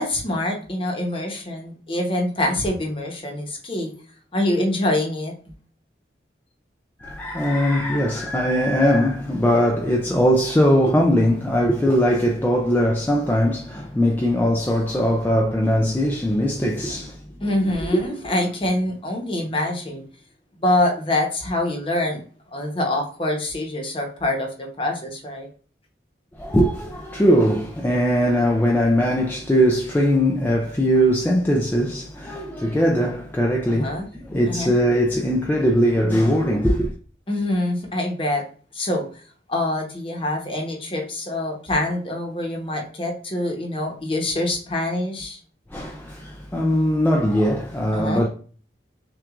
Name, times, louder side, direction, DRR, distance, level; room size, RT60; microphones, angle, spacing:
voice 1, 0.0-3.9 4.3-5.3 17.4-20.0 20.6-22.2 22.5-25.5 33.7-34.1 34.5-34.7 37.3-38.4 38.7-39.0 39.5-45.4 47.9-48.3, left 1 dB, 30° left, 0.9 m, -25 dB
voice 2, 7.0-17.2 17.9-18.0 26.4-36.9 45.7-48.3, equal, 10° left, 0.3 m, -20 dB
5.9 x 2.4 x 2.4 m
head